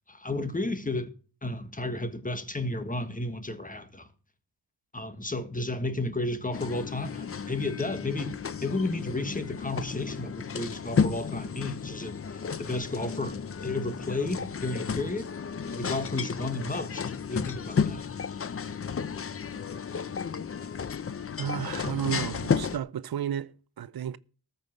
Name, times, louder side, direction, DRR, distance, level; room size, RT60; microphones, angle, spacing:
voice 1, 0.1-1.1 1.4-4.1 4.9-8.3 8.6-15.3 15.7-18.1, left 2 dB, 20° left, 1.5 m, -32 dB
sound 1, 6.5-22.8, left 6 dB, 35° left, 0.6 m, -33 dB
voice 2, 21.4-24.2, right 9 dB, 65° right, 0.6 m, -32 dB
13.5 x 5.6 x 7.7 m
cardioid pair, 80°, 40 cm